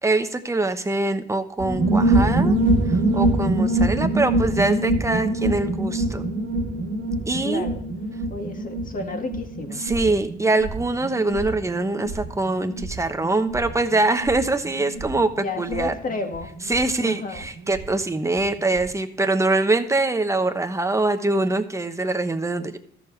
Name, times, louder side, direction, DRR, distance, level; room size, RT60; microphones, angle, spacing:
voice 1, 0.0-2.6 2.9-6.3 7.3-7.6 9.8-15.9 16.7-22.8, right 2 dB, 15° right, 7 dB, 1.0 m, -23 dB
sound 1, 1.6-17.9 18.1-18.2 18.4-18.9, right 2 dB, 75° right, 2.0 m, -25 dB
voice 2, 7.4-7.8 8.3-9.8 14.8-16.5 17.0-17.5, left 3 dB, 45° left, 4 dB, 1.9 m, -32 dB
14.0 x 6.8 x 3.2 m, 0.66 s
cardioid pair, 90°, 20 cm